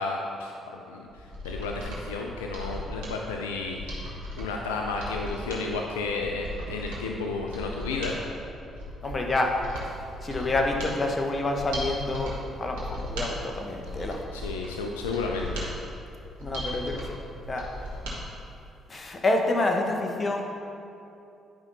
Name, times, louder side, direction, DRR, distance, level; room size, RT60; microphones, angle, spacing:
voice 1, 0.0-3.8 4.4-8.2 14.3-15.7, left 3 dB, 85° left, 1 dB, 0.4 m, -32 dB
Mechanisms, 1.1-18.2 18.5-18.6, left 1 dB, 80° right, 1.6 m, -37 dB
voice 2, 9.0-9.6 10.2-14.2 16.4-17.2 17.5-17.7 18.9-20.4, left 2 dB, 35° left, 2 dB, 1.2 m, -28 dB
10.5 x 5.4 x 4.0 m, 2.7 s
hypercardioid pair, 45°, 0 cm